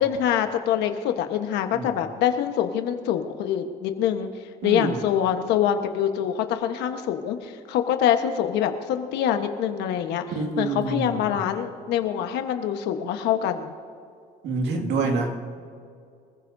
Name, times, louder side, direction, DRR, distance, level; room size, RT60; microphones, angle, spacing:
voice 1, 0.0-4.3 4.6-10.2 10.6-13.7, left 9 dB, 90° left, 7 dB, 1.3 m, -25 dB
voice 2, 4.6-5.0 10.3-11.2 14.4-15.6, right 3 dB, 85° right, 2 dB, 2.3 m, -27 dB
26.0 x 15.0 x 2.7 m, 2.4 s
cardioid pair, 110°, 17 cm